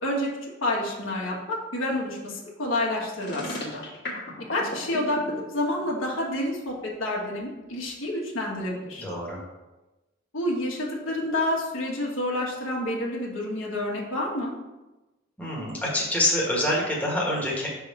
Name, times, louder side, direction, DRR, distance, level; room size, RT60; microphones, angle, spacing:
voice 1, 0.0-3.8 4.5-9.0 10.3-14.5, left 1 dB, 85° left, -3 dB, 1.4 m, -29 dB
sound 1, 3.2-5.3, left 1 dB, 55° left, 1.3 m, -34 dB
voice 2, 9.0-9.4 15.4-17.7, left 1 dB, 5° left, -4 dB, 1.2 m, -26 dB
5.6 x 3.5 x 5.3 m, 1.1 s
head